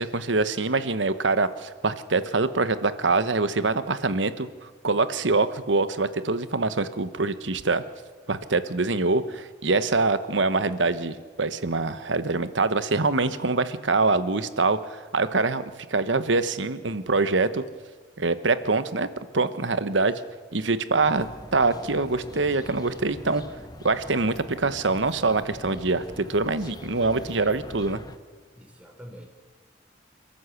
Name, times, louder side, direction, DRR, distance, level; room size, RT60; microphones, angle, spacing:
voice 1, 0.0-4.5 4.8-7.8 8.3-17.6 18.2-19.1 19.3-20.2 20.5-23.4 23.8-28.0, right 3 dB, 80° right, 12 dB, 1.2 m, -24 dB
sound 1, 21.0-28.2, left 1 dB, 20° left, 0.9 m, -43 dB
voice 2, 28.5-29.3, equal, 5° right, 2 dB, 3.4 m, -46 dB
28.5 x 13.5 x 8.3 m, 1.4 s
head